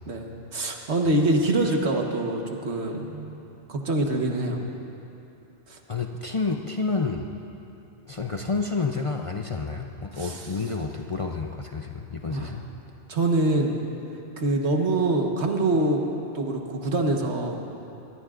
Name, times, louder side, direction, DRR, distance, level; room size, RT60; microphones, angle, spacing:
voice 1, 0.0-3.4 3.7-4.6 5.7-5.8 10.1-10.4 12.3-12.5 13.1-13.8 14.4-16.0 16.3-17.6, right 2 dB, 70° right, 2 dB, 1.6 m, -25 dB
voice 2, 5.9-7.3 8.1-12.6, left 4 dB, 35° left, 2 dB, 0.5 m, -29 dB
23.0 x 20.0 x 2.5 m, 2.9 s
omnidirectional pair, 1.2 m